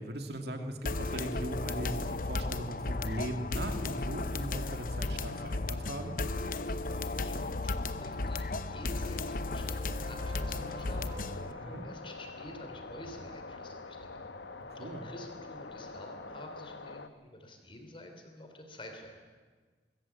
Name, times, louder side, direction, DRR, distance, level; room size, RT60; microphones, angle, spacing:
voice 1, 0.0-6.2 11.6-11.8 14.8-15.1, right 1 dB, 65° right, 5 dB, 2.1 m, -39 dB
sound 1, 0.9-11.5, left 2 dB, 50° left, 0.8 m, -35 dB
voice 2, 6.7-14.3 14.8-19.2, left 1 dB, 30° left, 4 dB, 3.5 m, -49 dB
sound 2, 6.8-12.5 16.6-16.7, right 1 dB, 25° right, 1.1 m, -54 dB
sound 3, 10.2-17.1, left 3 dB, 85° left, 1.1 m, -45 dB
23.5 x 14.0 x 8.4 m, 1.4 s
head